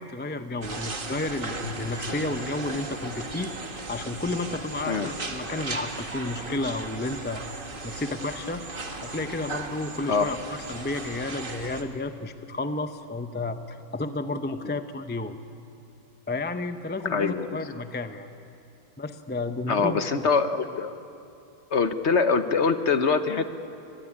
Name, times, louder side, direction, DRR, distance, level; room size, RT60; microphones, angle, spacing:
voice 1, 0.0-3.5 3.9-7.4 7.8-8.6 9.0-15.4 16.3-18.3 19.0-20.2, left 2 dB, 10° left, 8 dB, 0.5 m, -32 dB
sound 1, 0.6-11.8, right 2 dB, 35° right, 1.8 m, -36 dB
voice 2, 17.0-17.5 19.7-20.9 21.7-23.5, left 5 dB, 50° left, 9 dB, 1.1 m, -24 dB
23.5 x 22.5 x 9.9 m, 2.7 s
omnidirectional pair, 1.7 m